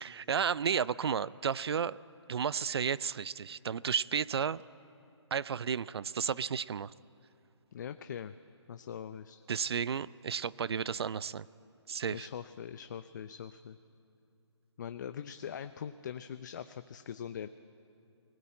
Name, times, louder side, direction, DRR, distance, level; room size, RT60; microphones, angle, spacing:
voice 1, 0.0-2.0 2.3-4.6 5.3-6.9 9.5-11.5 11.9-12.3, right 7 dB, 60° right, 20 dB, 0.4 m, -32 dB
voice 2, 7.7-8.3 8.7-9.4 12.1-13.8 14.8-17.5, left 8 dB, 40° left, 11 dB, 0.5 m, -42 dB
21.0 x 19.0 x 8.6 m, 2.7 s
hypercardioid pair, 155°, 15 cm